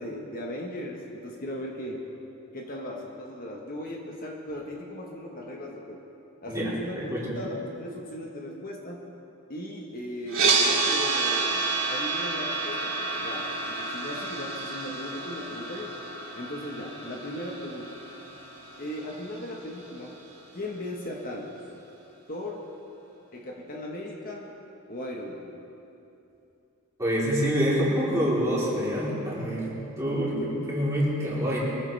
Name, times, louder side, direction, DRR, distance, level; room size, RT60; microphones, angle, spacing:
voice 1, 0.0-2.1 2.5-6.0 6.4-9.0 9.5-15.9 16.3-18.0 18.8-20.2 20.5-21.5 22.3-22.6 23.3-24.5 24.9-25.5, left 1 dB, 40° left, -1 dB, 1.4 m, -37 dB
sound 1, 10.3-20.4, right 3 dB, 65° right, 3.1 m, -30 dB
voice 2, 27.0-31.6, equal, 15° right, -7 dB, 3.6 m, -26 dB
23.0 x 15.0 x 3.5 m, 2.9 s
head